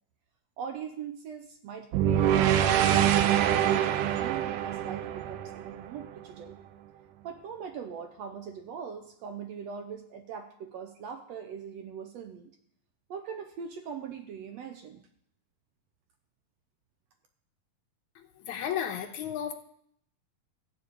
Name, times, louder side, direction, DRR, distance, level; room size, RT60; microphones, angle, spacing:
voice 1, 0.6-3.0 3.4-6.6 7.2-12.5 13.1-15.0, right 7 dB, 70° right, 6 dB, 1.8 m, -41 dB
sound 1, 1.9-6.2, right 10 dB, 85° right, 2.3 m, -25 dB
voice 2, 18.4-19.5, left 9 dB, 75° left, 4 dB, 2.3 m, -33 dB
14.5 x 5.3 x 8.2 m, 0.67 s
omnidirectional pair, 3.7 m